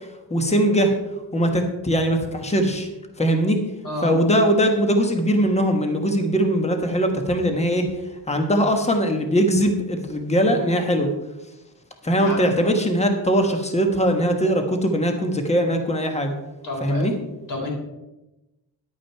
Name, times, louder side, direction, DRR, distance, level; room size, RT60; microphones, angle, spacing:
voice 1, 0.3-0.9 1.3-2.9 3.2-3.6 4.0-7.9 8.3-11.1 12.0-16.3 16.8-17.1, equal, 15° left, 5 dB, 1.3 m, -21 dB
voice 2, 3.8-4.2 12.2-12.4 16.6-17.1 17.5-17.7, left 2 dB, 50° left, -1 dB, 3.4 m, -29 dB
10.5 x 8.7 x 4.6 m, 1.0 s
wide cardioid pair, 150°, 43 cm